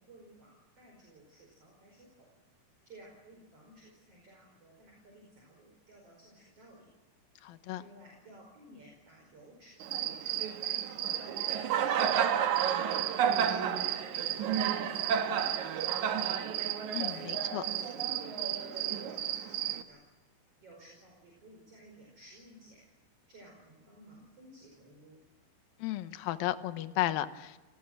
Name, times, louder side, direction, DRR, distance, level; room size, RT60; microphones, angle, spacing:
voice 1, 0.0-2.3 2.8-6.9 7.8-11.3 11.5-12.5 13.0-14.9 15.3-16.3 17.1-20.0 20.6-22.8 23.3-25.2, right 1 dB, 30° right, 0 dB, 5.7 m, -56 dB
voice 2, 7.4-7.8 16.9-17.6 25.8-27.6, left 14 dB, 70° left, 11 dB, 2.3 m, -34 dB
Cricket, 9.8-19.8, right 9 dB, 65° right, 1.9 m, -31 dB
29.0 x 18.5 x 7.8 m, 1.2 s
omnidirectional pair, 5.2 m